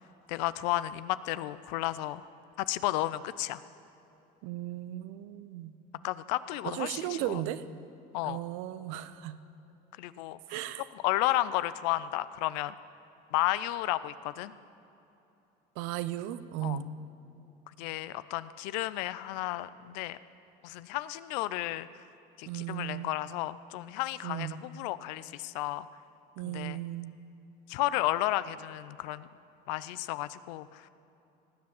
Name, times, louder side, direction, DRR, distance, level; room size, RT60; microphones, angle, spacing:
voice 1, 0.3-2.2 2.6-3.6 6.0-7.4 8.1-8.4 10.0-10.6 11.0-12.7 13.3-14.5 16.6-16.8 17.8-20.2 20.6-22.0 22.4-25.9 26.4-26.8 27.7-29.3 29.7-30.9, left 16 dB, 90° left, 16 dB, 0.5 m, -32 dB
voice 2, 4.4-5.7 6.6-7.6 8.2-9.3 10.5-10.8 15.8-16.9 22.5-23.1 24.2-24.6 26.4-27.1, right 13 dB, 80° right, 14 dB, 0.7 m, -36 dB
18.0 x 7.8 x 7.2 m, 2.9 s
supercardioid pair, 95°, 21 cm